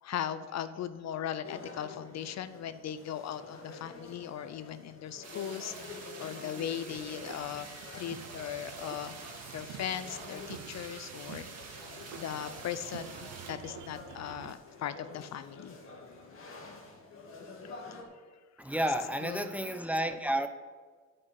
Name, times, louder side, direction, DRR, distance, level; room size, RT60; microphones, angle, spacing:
voice 1, 0.0-9.1 9.5-11.8 12.1-15.8 17.6-18.1 19.2-19.5, left 9 dB, 60° left, 12 dB, 0.6 m, -38 dB
sound 1, 1.4-18.0, left 3 dB, 45° left, 2.1 m, -49 dB
sound 2, 5.2-13.5, right 4 dB, 55° right, 2.2 m, -48 dB
sound 3, 6.9-14.5, right 11 dB, 80° right, 0.6 m, -49 dB
voice 2, 18.6-20.5, right 1 dB, 5° right, 8 dB, 0.8 m, -31 dB
9.4 x 5.5 x 7.5 m, 1.5 s
cardioid pair, 90°, 30 cm